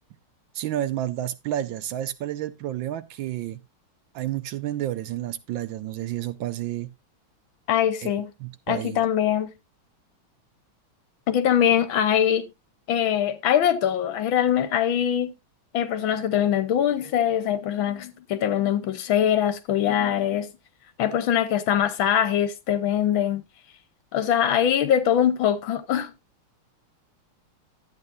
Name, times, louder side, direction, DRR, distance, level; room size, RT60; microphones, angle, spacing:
voice 1, 0.5-3.6 4.1-6.9 8.0-8.1 8.4-9.0, right 12 dB, 75° right, 1.3 m, -30 dB
voice 2, 7.7-8.3 8.7-9.5 11.3-12.5 12.9-15.3 15.7-20.5 21.0-23.4 24.1-26.1, left 9 dB, 75° left, 1.7 m, -22 dB
12.0 x 8.3 x 2.6 m
omnidirectional pair, 2.3 m